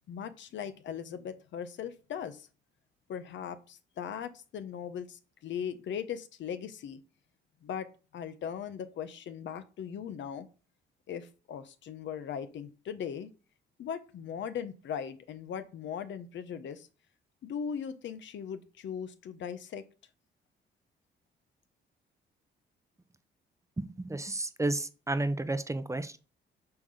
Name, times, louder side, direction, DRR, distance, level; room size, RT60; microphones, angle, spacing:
voice 1, 0.1-2.5 3.1-7.0 7.6-7.9 8.1-10.5 11.1-13.3 13.8-16.9 17.4-19.8, left 8 dB, 70° left, 10 dB, 1.0 m, -39 dB
voice 2, 23.8-26.2, right 2 dB, 15° right, 12 dB, 0.8 m, -32 dB
7.5 x 3.9 x 6.5 m, 0.34 s
cardioid pair, 90°, 20 cm